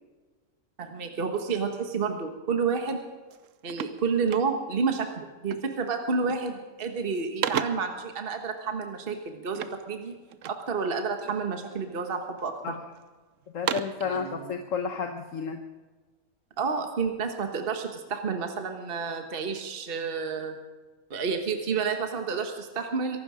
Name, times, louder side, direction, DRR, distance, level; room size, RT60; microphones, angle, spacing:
voice 1, 0.8-3.0 3.6-10.1 10.5-12.5 14.0-14.5 16.6-20.5 21.1-23.2, right 5 dB, 40° right, 5 dB, 1.5 m, -30 dB
sound 1, 2.8-3.0 3.3-4.9 5.5-5.8 6.1-6.6 7.0-8.0 9.5-10.7 11.2-11.9 12.4-13.0 13.4-14.1, right 9 dB, 65° right, 1.0 m, -35 dB
voice 2, 13.5-15.6, left 5 dB, 60° left, 5 dB, 1.3 m, -31 dB
23.5 x 12.0 x 5.0 m, 1.3 s
omnidirectional pair, 1.6 m